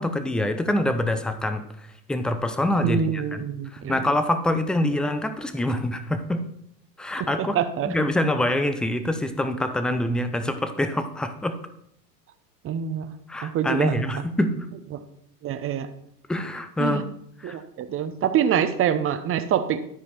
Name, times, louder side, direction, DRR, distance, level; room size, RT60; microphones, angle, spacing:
voice 1, 0.0-1.6 2.1-3.4 3.7-6.5 7.0-7.6 7.8-11.6 13.3-14.7 16.3-17.0 17.4-17.6, left 1 dB, ahead, 9 dB, 0.5 m, -25 dB
voice 2, 2.8-4.0 7.2-7.9 12.6-13.1 13.4-14.1 14.9-15.0 15.4-15.9 16.8-17.0 17.4-19.9, right 8 dB, 25° right, 11 dB, 0.8 m, -25 dB
12.5 x 5.0 x 4.3 m, 0.69 s
hypercardioid pair, 95°, 50 cm